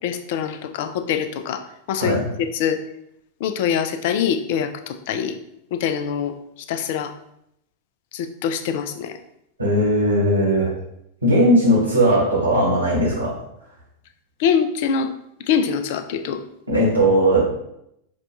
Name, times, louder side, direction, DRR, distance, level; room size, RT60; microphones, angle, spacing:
voice 1, 0.0-1.6 1.9-2.8 3.4-5.4 5.7-6.3 6.7-7.1 8.1-9.2 14.4-15.1 15.5-16.4, left 7 dB, 50° left, 8 dB, 0.3 m, -24 dB
voice 2, 9.6-10.7 11.2-13.4 16.7-17.4, right 1 dB, 85° right, -4 dB, 1.2 m, -18 dB
4.9 x 2.2 x 2.7 m, 0.79 s
figure-of-eight pair, 90°, 0 cm